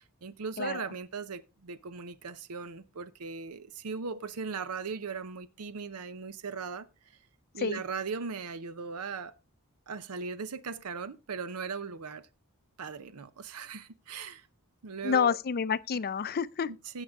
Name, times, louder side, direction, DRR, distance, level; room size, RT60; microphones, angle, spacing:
voice 1, 0.0-6.9 7.5-9.4 9.9-12.3 12.8-14.5 14.8-15.4 16.7-17.0, right 5 dB, 80° right, 0.7 m, -38 dB
voice 2, 15.0-16.7, left 6 dB, 45° left, 0.5 m, -29 dB
16.0 x 6.5 x 3.6 m
head